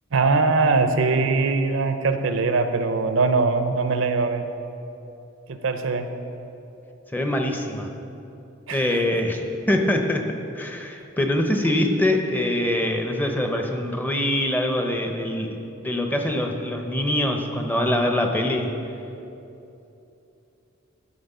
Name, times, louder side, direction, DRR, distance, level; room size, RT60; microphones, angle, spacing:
voice 1, 0.1-4.5 5.5-6.1 8.7-9.0, right 3 dB, 70° right, 8 dB, 0.5 m, -22 dB
voice 2, 7.1-7.9 8.7-10.3 10.5-18.7, left 1 dB, 10° left, 3 dB, 0.5 m, -24 dB
12.5 x 4.2 x 5.5 m, 2.9 s
head